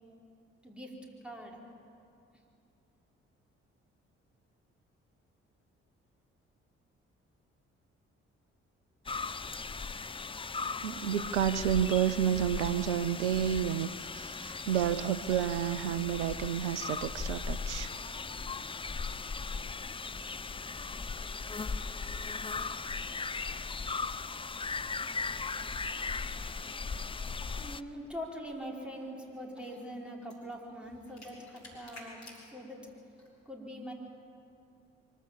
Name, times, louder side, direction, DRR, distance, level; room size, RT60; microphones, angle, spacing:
voice 1, 0.6-1.6 26.9-27.1 27.6-32.9 33.4-33.9, equal, 5° right, -2 dB, 4.8 m, -43 dB
sound 1, 9.1-27.8, left 4 dB, 15° left, 0.6 m, -38 dB
voice 2, 10.8-17.9, right 10 dB, 75° right, 13 dB, 0.5 m, -30 dB
sound 2, 26.2-33.3, left 1 dB, 50° left, 5.4 m, -56 dB
24.0 x 15.0 x 7.5 m, 2.5 s
figure-of-eight pair, 40°, 35 cm